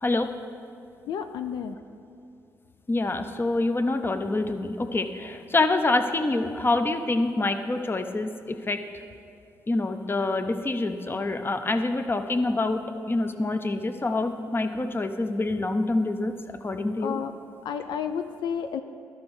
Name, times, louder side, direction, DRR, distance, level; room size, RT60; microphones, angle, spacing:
voice 1, 0.0-0.3 2.9-8.8 9.7-12.8 13.1-16.3 16.6-17.2, left 2 dB, 30° left, 8 dB, 0.7 m, -26 dB
voice 2, 1.1-1.8 17.0-17.3 17.6-18.8, left 7 dB, 75° left, 7 dB, 0.4 m, -31 dB
12.0 x 5.2 x 4.8 m, 2.5 s
supercardioid pair, 55°, 8 cm